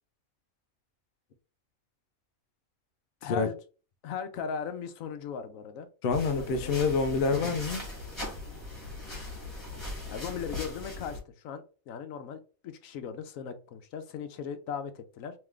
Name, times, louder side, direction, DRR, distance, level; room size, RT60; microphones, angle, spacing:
voice 1, 3.2-3.6 4.0-5.9 6.3-6.7 10.1-11.2 11.4-15.3, left 7 dB, 75° left, 1.0 m, -38 dB
voice 2, 6.0-7.9, left 4 dB, 60° left, 0.7 m, -27 dB
sound 1, 6.1-11.2, left 2 dB, 20° left, 2.1 m, -39 dB
3.6 x 3.1 x 3.2 m
omnidirectional pair, 1.4 m